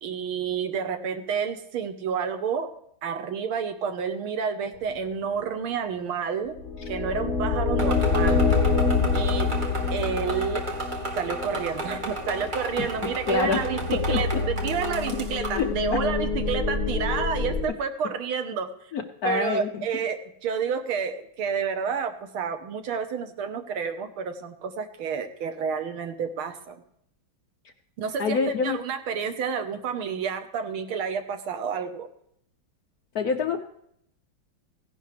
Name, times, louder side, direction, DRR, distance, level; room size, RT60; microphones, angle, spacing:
voice 1, 0.0-2.7 3.0-6.6 6.9-8.4 9.1-9.5 9.9-10.6 11.2-18.7 19.2-26.8 28.0-32.1, right 6 dB, 85° right, 8 dB, 1.9 m, -30 dB
sound 1, 6.5-17.6, left 4 dB, 30° left, 2.8 m, -27 dB
sound 2, 7.8-15.7, right 2 dB, 25° right, 1.7 m, -34 dB
voice 2, 13.3-13.6 13.9-14.4 15.4-16.0 18.9-19.8 28.2-28.8 33.1-33.6, left 5 dB, 60° left, 6 dB, 1.0 m, -26 dB
16.5 x 11.0 x 3.3 m, 0.70 s
omnidirectional pair, 2.3 m